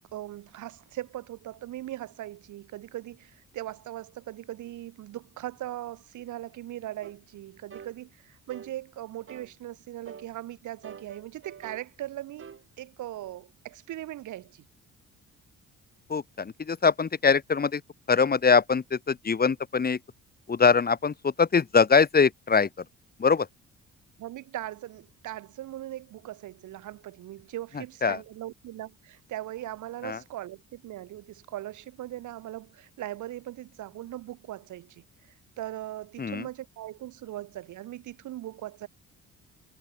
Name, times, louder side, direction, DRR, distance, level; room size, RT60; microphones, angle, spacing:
voice 1, 0.0-12.5 12.8-14.6 24.2-38.9, right 14 dB, 80° right, 1.5 m, -39 dB
sound 1, 7.0-7.2 7.7-7.9 8.5-8.7 9.3-9.5 10.1-10.3 10.8-11.9 12.4-12.6, right 7 dB, 45° right, 3.2 m, -45 dB
voice 2, 16.1-17.8 18.1-20.0 20.5-22.7 23.2-23.5 28.0-28.2 30.0-30.2 36.2-36.5, left 5 dB, 30° left, 1.4 m, -23 dB
cardioid pair, 90°, 30 cm